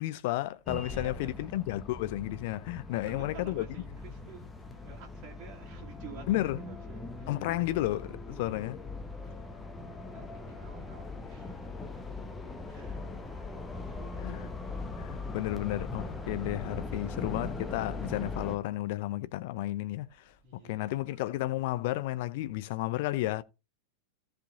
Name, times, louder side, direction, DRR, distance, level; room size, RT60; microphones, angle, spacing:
voice 1, 0.0-3.7 6.3-6.6 7.3-8.8 14.2-14.5 15.0-20.1 20.5-23.4, left 16 dB, 50° left, 0.6 m, -32 dB
sound 1, 0.7-18.6, left 3 dB, 15° left, 1.3 m, -40 dB
voice 2, 0.9-1.5 2.9-4.5 4.8-8.7 9.2-9.4 10.1-11.8 12.7-13.0 13.3-14.9 20.4-21.3, right 6 dB, 35° right, 2.2 m, -51 dB
14.5 x 5.2 x 3.9 m
figure-of-eight pair, 90°, 0 cm